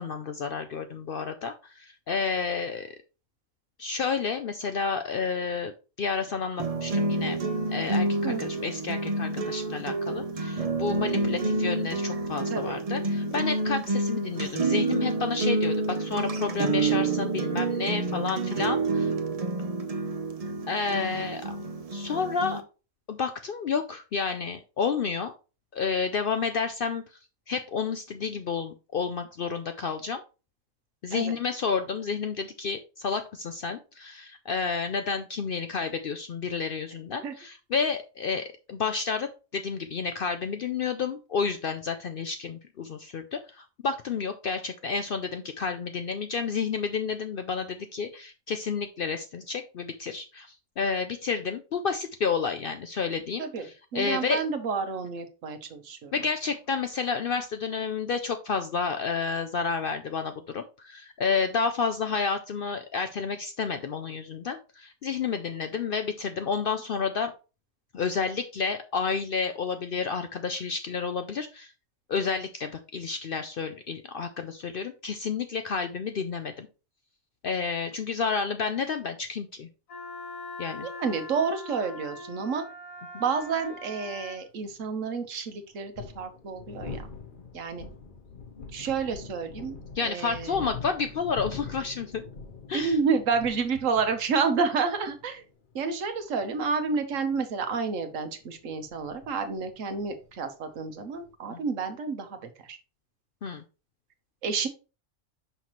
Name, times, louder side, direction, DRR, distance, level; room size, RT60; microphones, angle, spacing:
voice 1, 0.0-2.9 3.8-5.7 6.0-7.4 7.7-19.1 20.7-21.4 21.9-22.6 23.1-25.3 25.7-27.0 27.5-30.2 31.0-54.4 56.1-67.3 67.9-71.7 72.1-76.7 77.4-79.7 80.6-80.9 90.0-92.2 92.7-93.0 101.5-101.6 103.4-103.6, left 5 dB, 60° left, 8 dB, 0.6 m, -30 dB
sound 1, 6.6-22.6, right 3 dB, 40° right, 0.5 m, -28 dB
voice 2, 12.5-12.8 31.1-31.3 37.2-37.3 53.4-53.7 53.9-56.1 80.8-82.6 83.2-87.0 87.5-87.8 88.7-90.7 92.7-95.4 95.7-102.8 104.4-104.7, right 5 dB, 70° right, 8 dB, 1.3 m, -30 dB
Wind instrument woodwind instrument, 79.9-84.4, left 2 dB, 85° left, 2.2 m, -41 dB
sound 2, 83.6-83.7 85.7-101.3, left 5 dB, 45° left, 0.9 m, -44 dB
5.7 x 5.7 x 3.0 m, 0.32 s
omnidirectional pair, 1.4 m